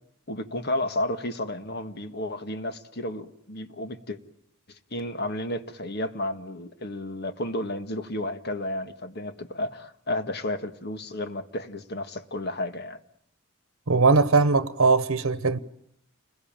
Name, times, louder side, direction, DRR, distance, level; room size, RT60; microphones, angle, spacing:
voice 1, 0.3-4.2 4.7-13.0, left 1 dB, 50° left, 1.7 m, -32 dB
voice 2, 13.9-15.6, right 4 dB, 85° right, 1.0 m, -20 dB
29.5 x 21.5 x 8.9 m
head